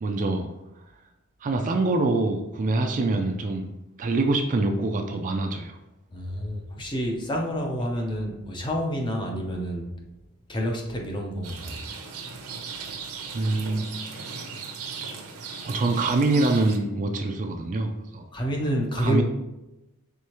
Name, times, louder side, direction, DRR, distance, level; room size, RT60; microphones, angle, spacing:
voice 1, 0.0-0.5 1.4-3.7 4.0-5.8 11.7-11.8 13.3-14.5 15.6-18.2 19.0-19.2, right 2 dB, 35° right, 5 dB, 0.4 m, -25 dB
voice 2, 6.1-9.9 10.5-11.8 18.3-19.2, equal, 20° left, 1 dB, 0.7 m, -29 dB
Rain, 11.4-16.8, right 5 dB, 75° right, 0.7 m, -37 dB
4.8 x 3.5 x 2.9 m, 0.95 s
head